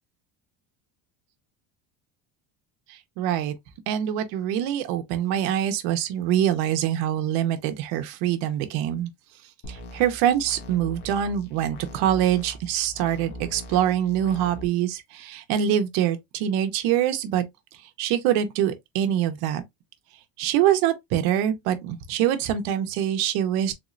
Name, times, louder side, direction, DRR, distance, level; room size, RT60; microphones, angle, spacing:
voice 1, 2.9-3.5 3.9-9.1 9.7-17.5 18.0-19.6 20.4-23.7, right 10 dB, 70° right, 0.8 m, -24 dB
sound 1, 9.6-14.6, equal, 85° left, 1.2 m, -41 dB
3.6 x 3.0 x 2.5 m
cardioid pair, 175°, 38 cm